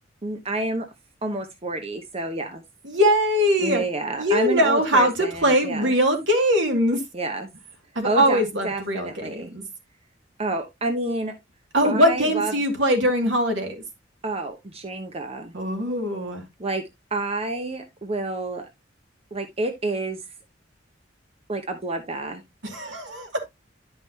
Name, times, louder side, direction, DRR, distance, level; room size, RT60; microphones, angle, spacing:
voice 1, 0.2-0.9 1.2-2.6 3.6-5.9 7.1-7.5 8.0-9.5 10.4-11.3 11.8-12.5 14.2-15.5 16.6-18.7 19.3-20.2 21.5-22.4, right 2 dB, 35° right, 0.9 m, -29 dB
voice 2, 2.8-3.8 4.2-7.0 8.0-9.6 11.7-13.8 15.5-16.4 22.6-23.3, equal, 75° right, 2.3 m, -21 dB
10.5 x 5.6 x 2.8 m
head